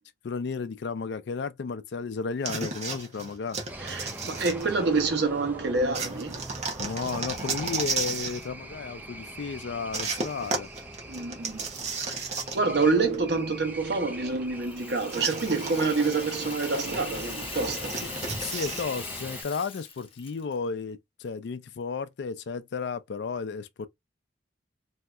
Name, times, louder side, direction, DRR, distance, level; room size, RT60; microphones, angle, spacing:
voice 1, 0.2-3.6 6.8-10.7 18.4-23.9, left 5 dB, 65° left, 0.4 m, -33 dB
sound 1, 2.4-5.1 5.9-8.5 9.9-12.9 13.1-13.2 15.1-18.9, right 4 dB, 40° right, 0.8 m, -34 dB
sound 2, 3.7-19.4, right 1 dB, 10° right, 0.5 m, -42 dB
voice 2, 3.8-6.5 11.1-11.7 12.1-18.0, right 3 dB, 65° right, 1.0 m, -27 dB
Rattle (instrument), 14.6-20.6, left 5 dB, 30° left, 0.8 m, -41 dB
3.2 x 2.8 x 2.3 m
head